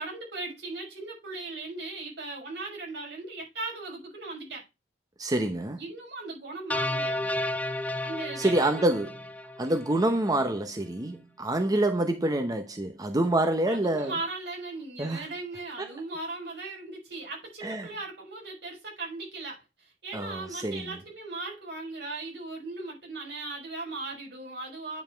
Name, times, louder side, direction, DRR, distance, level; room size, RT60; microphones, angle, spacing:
voice 1, 0.0-4.6 5.8-7.3 8.0-8.9 13.6-25.0, right 3 dB, 70° right, 5.9 m, -38 dB
voice 2, 5.2-5.8 8.4-9.1 9.6-14.1 15.0-15.2 15.8-15.9 17.6-17.9 20.1-20.8, right 1 dB, 20° right, 0.9 m, -27 dB
sound 1, 6.7-10.0, left 1 dB, 10° left, 0.5 m, -32 dB
9.4 x 5.4 x 4.5 m
head